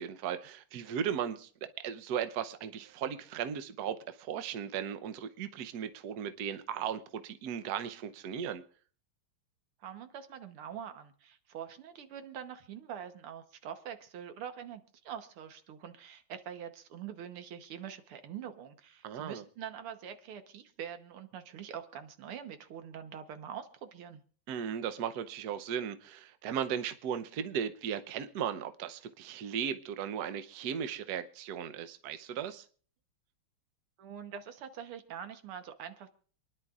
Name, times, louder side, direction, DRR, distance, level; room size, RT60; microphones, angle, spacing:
voice 1, 0.0-1.5 1.8-8.6 19.0-19.4 24.5-32.6, right 8 dB, 60° right, 10 dB, 1.1 m, -36 dB
voice 2, 9.8-24.2 34.0-36.1, right 8 dB, 90° right, 9 dB, 2.0 m, -44 dB
27.5 x 10.5 x 2.4 m, 0.43 s
omnidirectional pair, 2.3 m